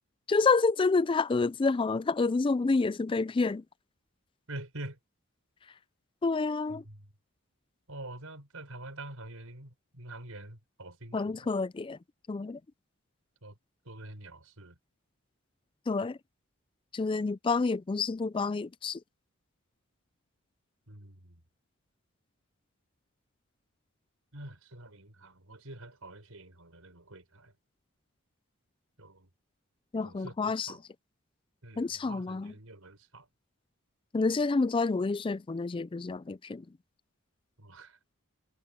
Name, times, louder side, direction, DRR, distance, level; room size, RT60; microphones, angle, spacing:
voice 1, 0.3-3.6 6.2-6.8 11.1-12.0 12.3-12.6 15.9-16.2 16.9-19.0 29.9-30.7 31.8-32.5 34.1-36.6, left 4 dB, 25° left, 0.3 m, -28 dB
voice 2, 4.5-5.0 6.7-7.1 7.9-11.5 13.4-13.5 13.8-14.8 20.9-21.4 24.3-27.5 29.0-29.3 30.0-30.8 31.6-33.3 37.6-38.0, right 2 dB, 90° right, 4.8 m, -46 dB
head